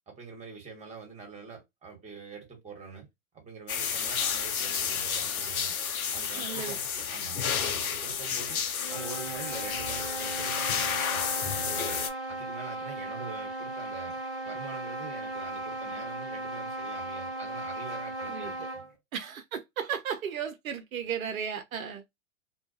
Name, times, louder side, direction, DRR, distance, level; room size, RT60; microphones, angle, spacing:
voice 1, 0.1-3.1 3.3-5.7 6.1-8.6 8.9-12.0 12.3-14.2 14.4-18.9, right 5 dB, 15° right, 1.2 m, -45 dB
sound 1, 3.7-12.1, left 7 dB, 90° left, 0.6 m, -31 dB
voice 2, 6.4-7.0 18.3-18.7 19.1-22.2, right 8 dB, 80° right, 0.6 m, -35 dB
sound 2, 8.6-18.9, right 2 dB, ahead, 1.1 m, -37 dB
2.2 x 2.2 x 2.6 m
hypercardioid pair, 110°, 41 cm